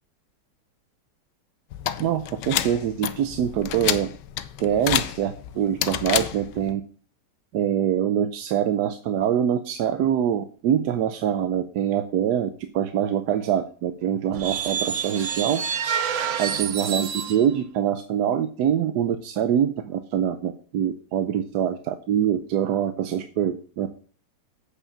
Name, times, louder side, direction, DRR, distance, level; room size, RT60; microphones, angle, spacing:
sound 1, 1.7-6.7, left 11 dB, 85° left, 1.3 m, -29 dB
voice 1, 2.0-4.1 4.6-6.8 7.5-12.5 12.7-15.6 16.4-23.9, right 9 dB, 75° right, 8 dB, 1.2 m, -24 dB
sound 2, 14.3-17.5, right 7 dB, 60° right, 0.8 m, -28 dB
8.3 x 5.7 x 7.1 m, 0.43 s
omnidirectional pair, 1.8 m